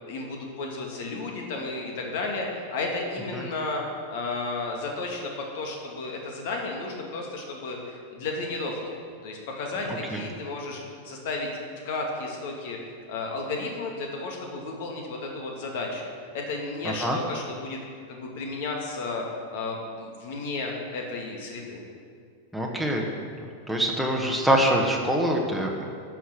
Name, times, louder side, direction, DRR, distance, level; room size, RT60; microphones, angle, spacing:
voice 1, 0.0-3.8 4.1-9.0 9.2-11.5 11.8-17.8 18.1-19.2 19.5-21.8, left 3 dB, 50° left, 1 dB, 2.2 m, -33 dB
voice 2, 22.5-23.3 23.7-25.9, equal, ahead, 0 dB, 1.4 m, -24 dB
11.5 x 6.4 x 7.4 m, 2.2 s
figure-of-eight pair, 90°, 0 cm